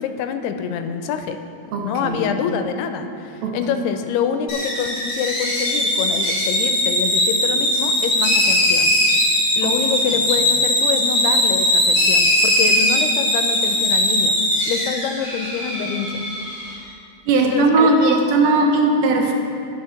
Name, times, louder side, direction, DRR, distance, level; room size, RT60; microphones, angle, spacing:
voice 1, 0.0-1.4 1.8-8.9 9.6-14.4 14.7-16.3 17.4-18.2, left 7 dB, 90° left, 8 dB, 2.6 m, -26 dB
voice 2, 1.7-2.2 3.4-3.6 9.6-9.7 17.3-19.3, right 3 dB, 75° right, 1 dB, 2.6 m, -18 dB
sound 1, 4.5-16.7, left 1 dB, 50° left, 2.6 m, -19 dB
10.5 x 6.4 x 5.7 m, 2.6 s
omnidirectional pair, 4.5 m